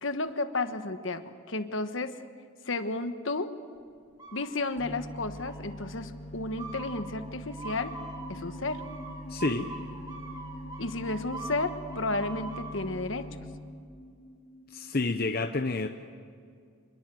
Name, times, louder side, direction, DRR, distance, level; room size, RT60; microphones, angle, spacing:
voice 1, 0.0-2.2 2.6-3.6 4.3-8.0 8.3-8.8 10.8-13.3, left 2 dB, 65° left, 9 dB, 1.3 m, -32 dB
sound 1, 4.2-4.9 5.3-5.9 6.6-12.9, right 3 dB, 20° right, 2.6 m, -43 dB
sound 2, 4.8-13.4, equal, 70° right, 6.3 m, -43 dB
sound 3, 7.7-15.1, equal, 5° left, 5.5 m, -48 dB
voice 2, 9.3-9.7 14.7-15.9, left 3 dB, 45° left, 6 dB, 0.9 m, -29 dB
27.0 x 22.0 x 7.7 m, 2.2 s
head